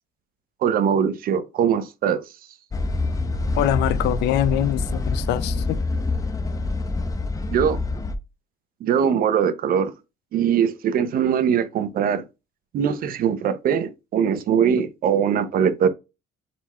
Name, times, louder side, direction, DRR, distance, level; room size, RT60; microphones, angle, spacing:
voice 1, 0.6-2.2 7.5-7.8 8.8-9.9 10.3-12.2 12.7-15.9, right 8 dB, 60° right, 0.7 m, -21 dB
sound 1, 2.7-8.1, left 3 dB, 20° left, 0.6 m, -26 dB
voice 2, 3.6-5.8, left 12 dB, 85° left, 0.5 m, -23 dB
4.2 x 4.2 x 2.3 m
cardioid pair, 110°, 17 cm